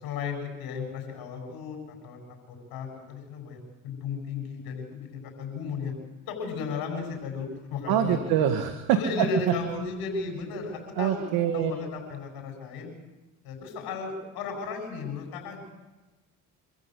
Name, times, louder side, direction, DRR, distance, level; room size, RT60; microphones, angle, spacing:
voice 1, 0.0-1.8 2.0-2.2 2.5-3.6 3.8-5.9 6.3-8.2 8.9-11.2 11.5-12.9 13.4-15.6, left 5 dB, 80° left, 3 dB, 8.0 m, -34 dB
voice 2, 7.9-9.5 11.0-11.7, right 10 dB, 80° right, 7 dB, 1.9 m, -25 dB
26.5 x 14.5 x 8.2 m, 1.1 s
supercardioid pair, 70°, 36 cm